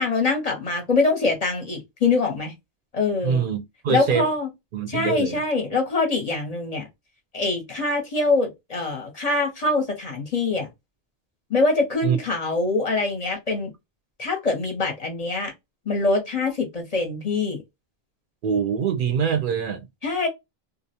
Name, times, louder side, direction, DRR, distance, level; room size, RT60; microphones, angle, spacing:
voice 1, 0.0-2.5 2.9-3.4 3.9-4.5 4.9-6.9 7.3-10.7 11.5-13.7 14.2-15.5 15.9-17.6 20.0-20.3, left 3 dB, 45° left, 0.6 m, -24 dB
voice 2, 3.2-4.2 4.7-5.4 12.0-12.2 18.4-19.9, right 7 dB, 60° right, 0.6 m, -24 dB
2.4 x 2.0 x 2.7 m
omnidirectional pair, 1.1 m